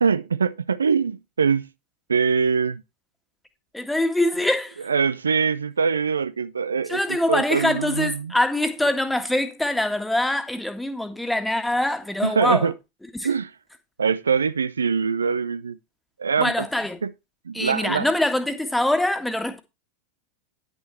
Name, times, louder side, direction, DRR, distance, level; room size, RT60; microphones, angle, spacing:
voice 1, 0.0-1.7 2.1-2.8 4.9-7.0 7.3-8.3 12.2-12.7 13.2-13.5 14.0-15.8 16.2-16.7 17.0-17.1 17.5-18.1, right 6 dB, 70° right, 0.5 m, -23 dB
voice 2, 3.7-4.8 6.9-12.7 13.1-13.3 16.4-17.0 17.5-19.6, left 1 dB, 5° left, 1.7 m, -24 dB
10.5 x 6.7 x 4.2 m
figure-of-eight pair, 90°, 0 cm